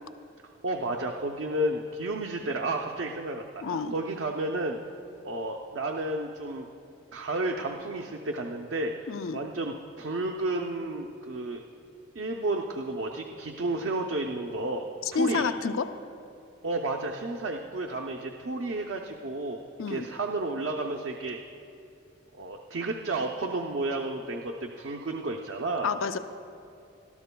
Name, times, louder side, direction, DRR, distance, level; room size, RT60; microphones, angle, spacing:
voice 1, 0.6-4.8 5.2-6.7 7.1-8.9 9.3-11.6 12.1-15.4 16.6-19.6 19.9-21.4 22.3-25.9, right 2 dB, 65° right, 1 dB, 0.6 m, -32 dB
voice 2, 3.6-3.9 9.1-9.4 15.1-15.9 19.8-20.1 25.8-26.2, left 5 dB, 85° left, 10 dB, 0.5 m, -29 dB
19.0 x 12.5 x 2.2 m, 2.6 s
head